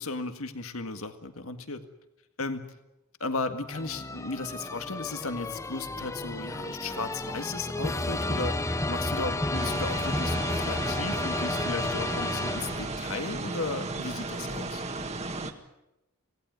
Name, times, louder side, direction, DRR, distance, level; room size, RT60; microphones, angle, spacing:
voice 1, 0.0-1.8 2.4-2.7 3.2-14.8, left 3 dB, 70° left, 8 dB, 1.9 m, -35 dB
sound 1, 3.7-13.2, left 2 dB, 15° left, 0.8 m, -32 dB
sound 2, 9.5-15.5, right 3 dB, 30° right, 1.7 m, -35 dB
26.0 x 18.0 x 9.5 m, 0.92 s
head